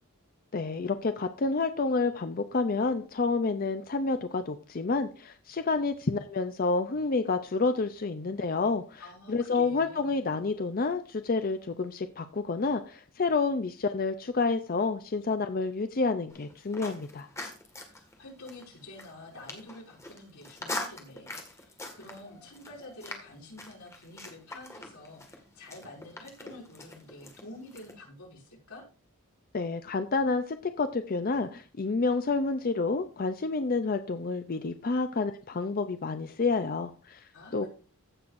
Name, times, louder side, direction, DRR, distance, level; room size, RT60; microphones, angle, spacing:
voice 1, 0.5-9.0 9.3-17.3 29.5-37.7, left 3 dB, 40° left, 9 dB, 0.5 m, -29 dB
voice 2, 9.0-10.1 17.7-28.8 37.3-37.7, left 2 dB, 85° left, -3 dB, 5.8 m, -48 dB
sound 1, 16.3-27.9, left 2 dB, 15° left, 1.8 m, -43 dB
15.5 x 6.4 x 2.5 m, 0.37 s
head